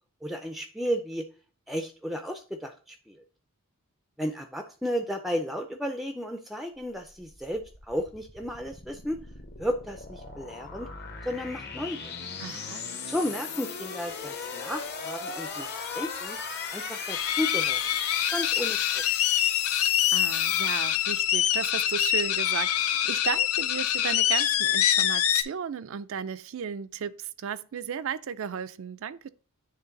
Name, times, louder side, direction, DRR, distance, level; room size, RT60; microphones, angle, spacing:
voice 1, 0.2-1.3 1.7-3.2 4.2-9.2 9.6-10.9 11.2-12.0 13.1-16.4 16.7-17.8 18.3-19.0, equal, ahead, 0.4 m, -33 dB
sound 1, 6.9-21.5, left 6 dB, 50° left, 1.1 m, -37 dB
voice 2, 12.4-12.8 20.1-29.3, right 7 dB, 65° right, 0.4 m, -34 dB
sound 2, 17.1-25.4, left 11 dB, 70° left, 0.5 m, -25 dB
9.4 x 3.3 x 3.9 m
head